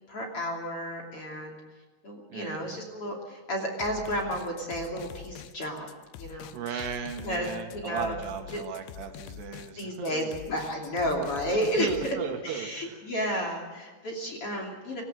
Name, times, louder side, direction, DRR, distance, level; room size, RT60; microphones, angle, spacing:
voice 1, 0.1-1.6 2.0-5.9 6.2-6.9 7.2-7.5 7.7-8.1 8.5-8.6 9.8-12.2 12.4-15.0, equal, 35° left, 1 dB, 3.3 m, -32 dB
voice 2, 2.3-2.6 6.3-10.3 11.8-13.0, right 7 dB, 75° right, 5 dB, 3.9 m, -36 dB
sound 1, 3.8-12.2, left 12 dB, 85° left, 3.1 m, -45 dB
25.5 x 15.0 x 7.9 m, 1.4 s
omnidirectional pair, 5.0 m